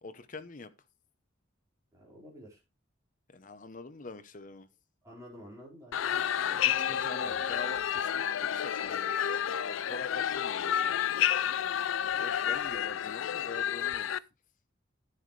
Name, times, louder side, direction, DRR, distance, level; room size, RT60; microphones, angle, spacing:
voice 1, 0.0-0.7 3.3-4.7 6.4-10.8 12.2-14.1, left 3 dB, 40° left, 0.8 m, -45 dB
voice 2, 1.9-2.6 5.0-7.6, equal, 15° right, 4.6 m, -51 dB
sound 1, 5.9-14.2, left 9 dB, 85° left, 0.4 m, -30 dB
11.0 x 8.3 x 3.2 m
head